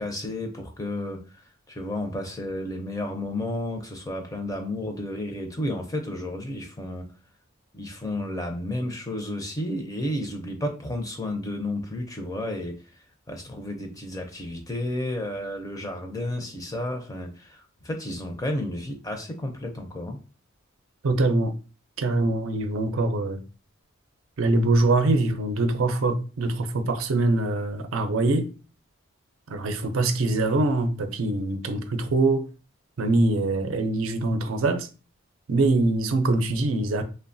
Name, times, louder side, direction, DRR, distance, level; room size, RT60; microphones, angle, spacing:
voice 1, 0.0-1.4 1.7-7.0 7.7-12.8 13.3-20.2, left 1 dB, 15° left, 0.5 m, -32 dB
voice 2, 21.0-21.5 22.0-23.4 24.4-28.5 29.5-32.5 33.0-34.9 35.5-37.0, right 2 dB, 85° right, 0.5 m, -23 dB
3.0 x 2.1 x 2.6 m
head